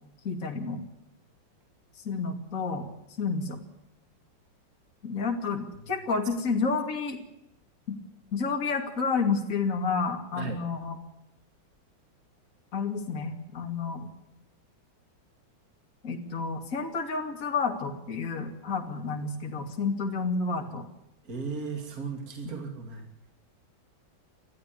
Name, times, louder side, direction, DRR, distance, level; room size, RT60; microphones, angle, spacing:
voice 1, 0.2-0.8 2.0-2.9 3.2-3.6 5.0-7.2 8.3-11.0 12.7-14.1 16.0-20.9 22.4-22.6, left 4 dB, 40° left, 2 dB, 2.8 m, -30 dB
voice 2, 21.2-23.1, right 4 dB, 45° right, 4 dB, 3.2 m, -36 dB
20.0 x 14.0 x 9.7 m, 0.85 s
omnidirectional pair, 2.3 m